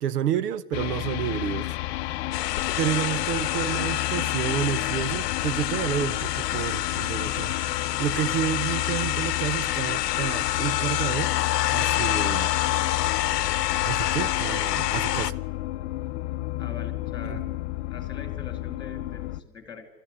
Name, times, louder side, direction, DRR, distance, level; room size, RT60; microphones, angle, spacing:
voice 1, 0.0-1.8 2.1-2.2 2.8-7.5 8.0-11.3 11.7-12.5 13.8-15.4 17.3-17.4, right 10 dB, 75° right, 1.0 m, -30 dB
sound 1, 0.7-19.4, left 17 dB, 45° left, 0.6 m, -32 dB
sound 2, 2.3-15.3, left 14 dB, 80° left, 0.9 m, -27 dB
voice 2, 16.6-17.5 17.9-19.9, left 5 dB, 10° left, 2.4 m, -42 dB
28.5 x 13.5 x 9.8 m
supercardioid pair, 150°, 47 cm